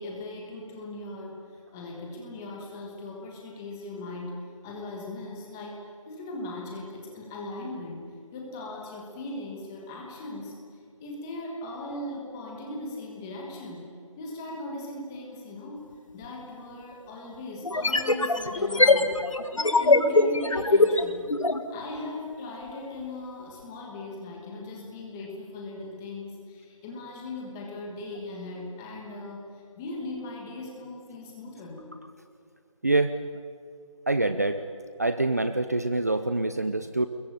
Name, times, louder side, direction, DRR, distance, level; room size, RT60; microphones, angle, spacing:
voice 1, 0.0-1.4 1.7-4.4 4.6-8.0 8.3-10.6 11.0-13.9 14.2-15.8 16.1-19.1 19.5-21.3 21.7-31.9, left 2 dB, 5° left, -1 dB, 1.4 m, -38 dB
sound 1, 16.2-16.3 17.6-21.6, left 2 dB, 75° left, 2.2 m, -22 dB
voice 2, 32.8-33.1 34.1-34.6 35.0-37.1, right 2 dB, 30° right, 10 dB, 0.7 m, -25 dB
25.5 x 21.5 x 9.1 m, 2.2 s
figure-of-eight pair, 175°, 17 cm